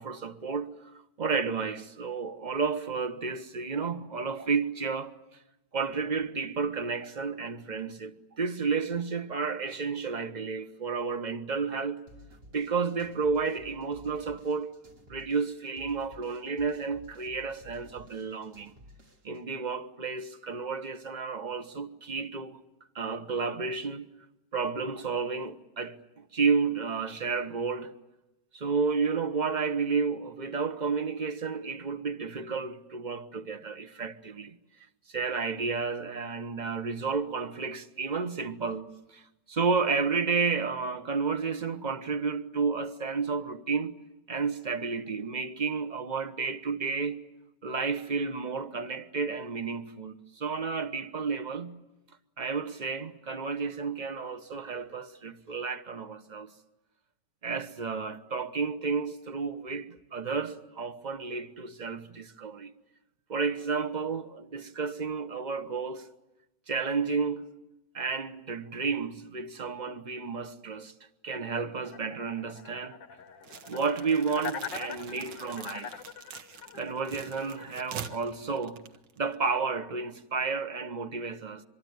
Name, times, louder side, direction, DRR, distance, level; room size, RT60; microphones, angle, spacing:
voice 1, 0.0-5.1 5.7-12.0 12.5-14.8 15.1-18.7 19.2-22.6 22.9-24.1 24.5-27.9 28.5-34.6 35.1-39.2 39.5-44.0 44.3-47.3 47.6-51.8 52.4-56.5 57.4-62.7 63.3-66.1 66.7-67.5 67.9-70.9 71.2-73.0 73.7-76.0 76.7-78.8 79.2-81.6, right 5 dB, 30° right, 0.9 m, -31 dB
sound 1, 12.1-19.4, equal, 60° right, 3.9 m, -54 dB
sound 2, 71.8-78.2, left 7 dB, 85° left, 1.9 m, -42 dB
sound 3, 73.4-79.5, right 7 dB, 80° right, 1.9 m, -45 dB
25.5 x 23.0 x 9.4 m
omnidirectional pair, 1.9 m